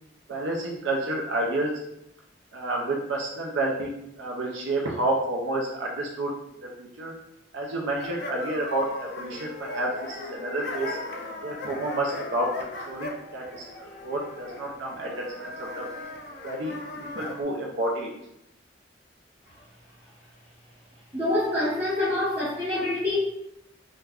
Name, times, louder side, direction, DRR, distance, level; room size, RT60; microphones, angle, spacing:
voice 1, 0.3-1.7 2.5-6.3 6.8-7.1 7.5-11.0 11.4-12.5 12.9-15.1 15.4-15.9 16.4-18.1, right 2 dB, 70° right, -1 dB, 0.5 m, -30 dB
sound 1, 7.9-17.4, left 2 dB, 55° left, 0.4 m, -38 dB
voice 2, 21.1-23.2, left 1 dB, 20° right, -13 dB, 1.1 m, -26 dB
3.4 x 2.1 x 2.3 m, 0.81 s
head